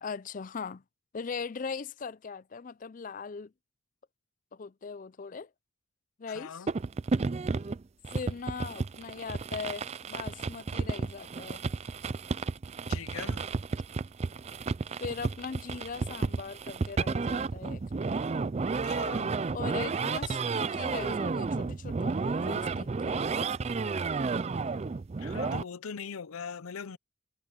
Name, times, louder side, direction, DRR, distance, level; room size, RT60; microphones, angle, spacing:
voice 1, 0.0-0.8 1.1-3.5 4.5-5.5 6.2-6.7 8.1-11.6 15.0-17.8 19.5-23.5, left 5 dB, 40° left, 0.4 m, -40 dB
voice 2, 6.3-6.7 12.9-13.4 18.8-19.3 25.2-27.0, left 6 dB, 85° left, 0.7 m, -41 dB
sound 1, 6.7-25.6, right 4 dB, 30° right, 0.3 m, -32 dB
head